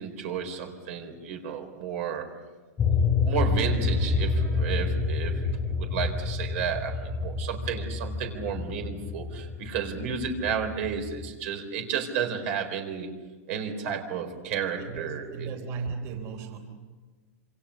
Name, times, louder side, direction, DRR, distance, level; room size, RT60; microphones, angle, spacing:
voice 1, 0.0-2.3 3.2-5.4 5.7-13.1 13.5-15.5, right 7 dB, 50° right, 5 dB, 4.2 m, -32 dB
sound 1, 2.8-11.3, left 4 dB, 15° left, 2.1 m, -28 dB
voice 2, 14.8-16.6, right 5 dB, 35° right, 5 dB, 4.0 m, -35 dB
27.5 x 27.0 x 6.6 m, 1.3 s
supercardioid pair, 155°, 9 cm